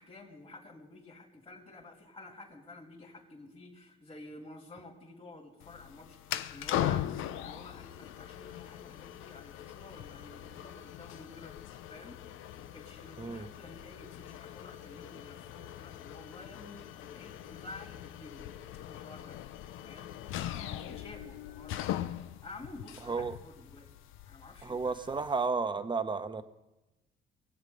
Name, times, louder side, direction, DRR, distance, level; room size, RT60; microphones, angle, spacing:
voice 1, 0.0-12.2 12.5-18.5 18.9-19.4 19.8-20.1 20.4-21.9 22.2-24.0 24.3-25.1, left 2 dB, 30° left, -4 dB, 2.7 m, -51 dB
sound 1, 5.6-25.5, left 12 dB, 90° left, 0.6 m, -40 dB
voice 2, 24.6-26.4, right 4 dB, 25° right, 10 dB, 0.9 m, -32 dB
23.0 x 8.1 x 5.3 m, 1.0 s
cardioid pair, 90°, 20 cm